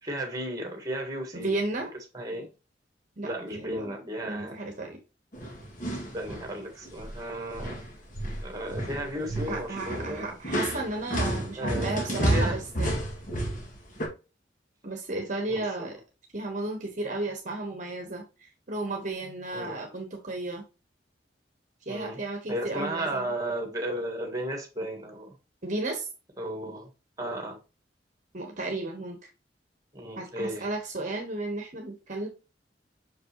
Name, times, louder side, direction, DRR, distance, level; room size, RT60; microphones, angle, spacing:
voice 1, 0.0-1.5 2.1-2.5 3.2-4.6 6.1-7.8 8.4-10.4 11.6-12.6 15.5-15.9 19.5-19.8 21.9-22.2 22.5-25.3 26.4-26.9 27.2-27.6 29.9-30.7, right 1 dB, 20° right, 4 dB, 1.8 m, -34 dB
voice 2, 1.3-1.9 3.2-5.0 9.4-12.9 14.8-16.0 16.3-20.6 21.9-23.3 25.6-26.1 28.3-29.2 30.2-32.3, right 2 dB, 45° right, 2 dB, 1.1 m, -34 dB
sound 1, 5.3-6.5 6.8-7.2 7.5-14.1, right 1 dB, 45° left, 2.0 m, -31 dB
6.3 x 5.2 x 2.9 m, 0.31 s
head